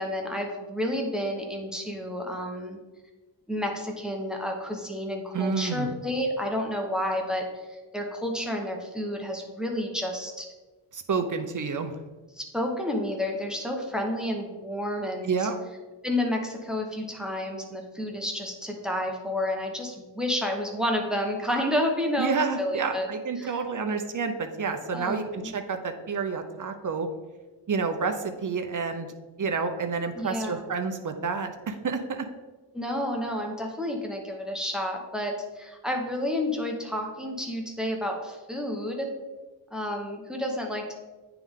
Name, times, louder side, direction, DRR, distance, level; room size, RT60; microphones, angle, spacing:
voice 1, 0.0-2.8 3.5-10.5 12.3-15.5 16.0-23.1 23.4-23.5 24.9-25.5 30.2-30.6 32.7-39.1 39.7-41.0, left 1 dB, ahead, 1 dB, 0.9 m, -30 dB
voice 2, 5.3-5.9 10.9-12.0 15.2-15.6 22.2-27.1 27.7-29.1 29.4-32.3, right 5 dB, 45° right, 7 dB, 0.7 m, -29 dB
9.2 x 3.4 x 3.6 m, 1.2 s
wide cardioid pair, 110°, 44 cm